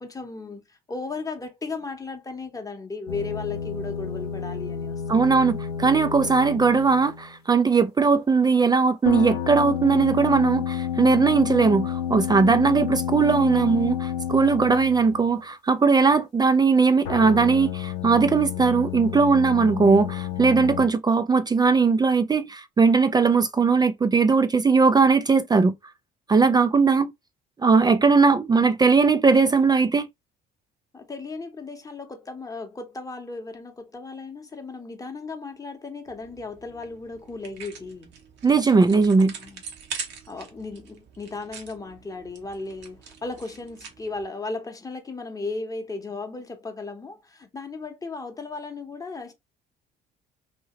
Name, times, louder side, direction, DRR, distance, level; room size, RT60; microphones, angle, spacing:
voice 1, 0.0-5.2 30.9-38.1 39.4-39.6 40.3-49.3, left 3 dB, 15° left, 0.9 m, -36 dB
sound 1, 3.1-7.3 9.1-15.4 17.0-20.9, left 9 dB, 85° left, 0.6 m, -30 dB
voice 2, 5.1-25.7 26.3-27.1 27.6-30.1 38.4-39.3, right 4 dB, 20° right, 0.4 m, -19 dB
sound 2, 36.1-44.3, right 6 dB, 60° right, 1.0 m, -43 dB
2.9 x 2.7 x 2.8 m
hypercardioid pair, 55°, 20 cm